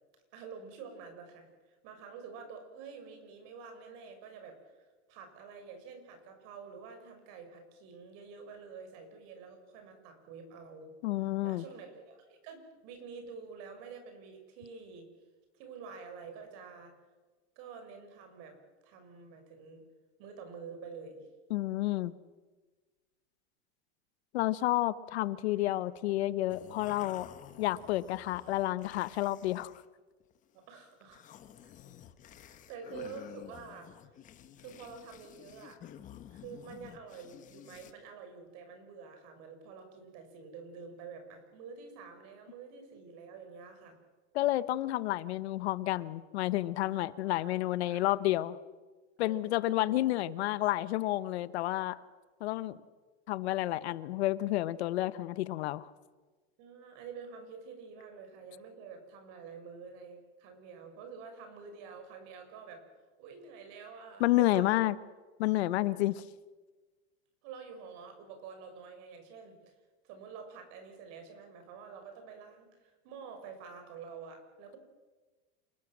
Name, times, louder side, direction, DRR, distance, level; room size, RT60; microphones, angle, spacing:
voice 1, 0.3-15.1 15.5-16.9 17.6-19.8 20.2-21.3 30.5-31.2 31.6-31.7 32.3-33.9 34.6-35.8 36.3-44.0 46.9-47.5 47.9-48.0 49.2-49.4 51.8-52.1 56.6-62.8 63.2-64.9 65.9-66.1 67.4-69.7 70.0-74.8, right 5 dB, 45° right, 6 dB, 6.1 m, -48 dB
voice 2, 11.0-11.6 21.5-22.1 24.3-27.3 27.6-29.7 44.3-48.6 49.2-52.0 52.4-52.8 53.3-55.9 64.2-65.0 65.4-66.2, left 16 dB, 80° left, 15 dB, 1.2 m, -30 dB
sound 1, 26.5-29.9 30.2-30.6 31.0-37.9, left 10 dB, 25° left, 1.2 m, -52 dB
28.0 x 20.0 x 7.5 m, 1.3 s
supercardioid pair, 165°, 32 cm